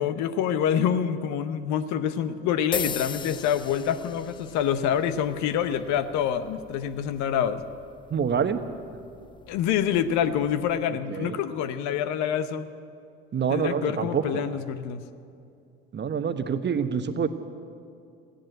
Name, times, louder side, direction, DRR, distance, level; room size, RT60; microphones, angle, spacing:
voice 1, 0.0-7.6 9.5-12.7 13.5-15.0, left 9 dB, 65° left, 11 dB, 0.9 m, -26 dB
sound 1, 2.7-10.8, left 6 dB, 15° left, 0.3 m, -40 dB
voice 2, 8.1-8.6 10.9-11.4 13.3-14.6 15.9-17.3, right 7 dB, 35° right, 10 dB, 1.1 m, -27 dB
15.0 x 10.5 x 7.9 m, 2.5 s
hypercardioid pair, 60°, 31 cm